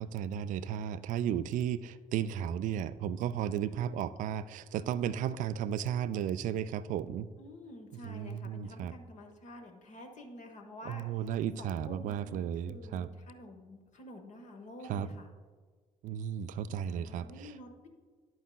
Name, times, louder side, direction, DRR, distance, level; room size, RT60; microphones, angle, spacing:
voice 1, 0.0-7.3 8.0-8.9 10.9-13.1 14.9-15.1 16.0-17.5, right 9 dB, 45° right, 15 dB, 0.4 m, -34 dB
voice 2, 7.4-15.3 16.8-17.9, left 1 dB, 40° left, 4 dB, 1.1 m, -49 dB
10.5 x 8.6 x 2.3 m, 1.5 s
figure-of-eight pair, 45°, 18 cm